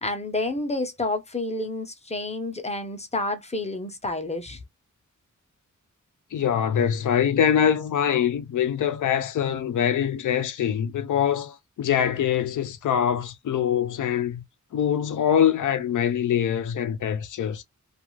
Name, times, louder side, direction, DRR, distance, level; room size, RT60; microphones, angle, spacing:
voice 1, 0.0-4.6, left 2 dB, 20° left, 0.6 m, -29 dB
voice 2, 6.3-14.4 14.7-17.6, left 9 dB, 85° left, 0.5 m, -24 dB
2.4 x 2.3 x 3.0 m
wide cardioid pair, 120°, 30 cm